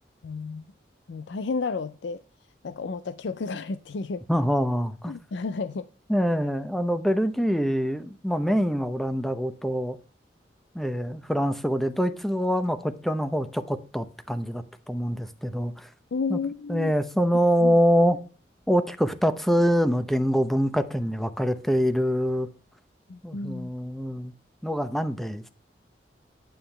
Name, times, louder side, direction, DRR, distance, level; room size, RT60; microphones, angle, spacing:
voice 1, 0.2-0.6 1.1-2.2 2.6-4.2 5.1-5.9 16.1-16.9 17.6-17.8 23.1-23.7, left 4 dB, 90° left, 0.5 m, -32 dB
voice 2, 4.3-5.1 6.1-10.0 10.7-15.9 16.3-16.4 16.7-18.2 18.7-22.5 23.2-24.3 24.6-25.5, equal, ahead, 0.7 m, -25 dB
9.3 x 8.9 x 3.3 m
head